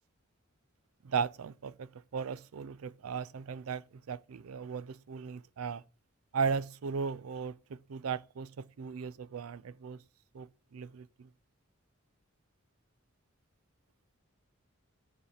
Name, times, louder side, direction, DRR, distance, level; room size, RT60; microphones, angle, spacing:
voice 1, 1.0-5.8 6.3-10.0 10.3-11.3, right 6 dB, 85° right, 0.4 m, -37 dB
7.2 x 5.3 x 6.5 m
head